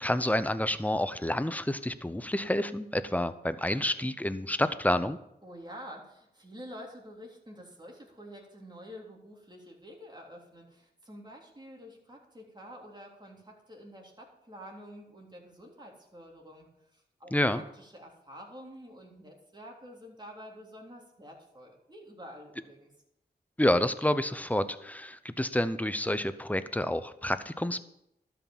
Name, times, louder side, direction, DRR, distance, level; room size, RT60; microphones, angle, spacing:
voice 1, 0.0-5.2 17.3-17.6 23.6-27.8, left 1 dB, 10° left, 12 dB, 0.7 m, -29 dB
voice 2, 5.4-22.9, equal, 25° right, -1 dB, 3.4 m, -48 dB
12.5 x 6.0 x 7.2 m, 0.80 s
wide cardioid pair, 55°, 18 cm